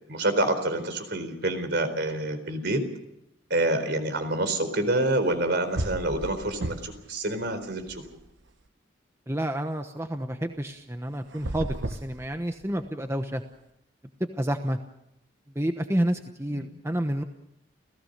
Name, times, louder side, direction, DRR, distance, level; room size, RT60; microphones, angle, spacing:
voice 1, 0.1-2.8 3.5-8.0 16.5-16.7, right 1 dB, 60° right, 9 dB, 4.2 m, -27 dB
sound 1, 5.3-5.4 5.7-7.1 7.4-8.5 11.3-12.8, right 1 dB, 80° right, 1.3 m, -34 dB
voice 2, 9.3-13.4 14.3-14.8 15.5-17.2, right 1 dB, 15° right, 6 dB, 1.1 m, -29 dB
30.0 x 16.5 x 6.7 m, 0.83 s
head